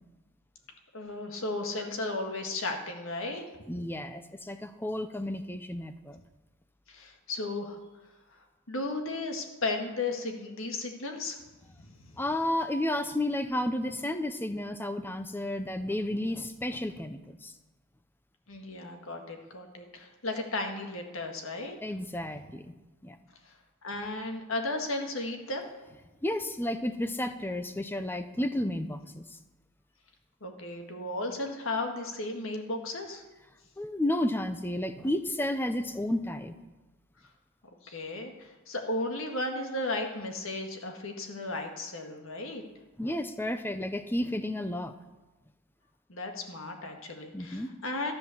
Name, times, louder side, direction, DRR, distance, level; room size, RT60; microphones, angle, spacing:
voice 1, 0.9-3.4 6.9-7.8 8.7-11.4 11.8-12.1 18.5-21.8 23.4-23.5 23.8-25.7 30.4-33.2 37.8-42.6 46.1-48.1, left 2 dB, 60° left, 3 dB, 1.8 m, -35 dB
voice 2, 3.7-6.2 12.2-17.5 21.8-22.7 23.0-23.2 26.2-29.2 33.8-36.5 43.0-44.9 47.3-47.7, left 1 dB, 10° left, 10 dB, 0.6 m, -32 dB
13.5 x 7.9 x 7.1 m, 1.1 s
head